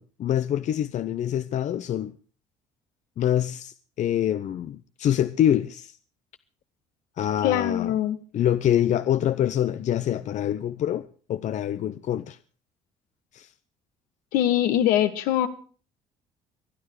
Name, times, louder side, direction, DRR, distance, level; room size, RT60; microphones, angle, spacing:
voice 1, 0.0-2.1 3.2-6.0 7.2-7.9 8.3-12.4 13.3-13.5, left 10 dB, 55° left, 0.7 m, -25 dB
voice 2, 7.4-8.2 14.3-15.5, left 11 dB, 80° left, 1.6 m, -22 dB
25.0 x 9.6 x 4.7 m
supercardioid pair, 80°, 15 cm